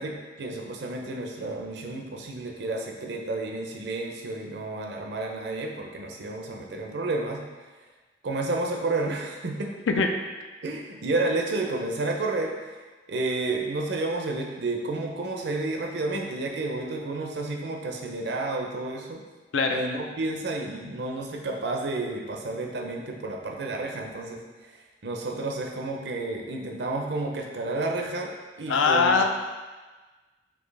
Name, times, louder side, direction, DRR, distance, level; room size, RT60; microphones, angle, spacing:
voice 1, 0.0-7.4 8.2-9.7 10.6-12.8 13.1-19.2 19.7-24.8 25.0-29.2, right 2 dB, 65° right, 1 dB, 0.5 m, -31 dB
voice 2, 28.7-29.2, left 4 dB, 85° left, 4 dB, 0.4 m, -21 dB
4.3 x 2.9 x 3.2 m, 1.3 s
head